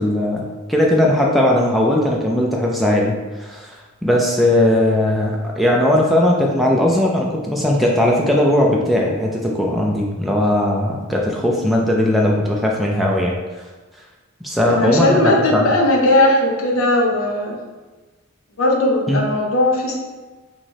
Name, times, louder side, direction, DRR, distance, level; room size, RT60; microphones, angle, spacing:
voice 1, 0.0-3.1 3.4-3.7 4.0-13.3 14.4-15.7 19.1-19.2, left 1 dB, ahead, -2 dB, 0.3 m, -18 dB
voice 2, 14.6-17.6 18.6-20.0, left 1 dB, 65° left, 0 dB, 0.7 m, -17 dB
4.5 x 3.0 x 2.8 m, 1.3 s
head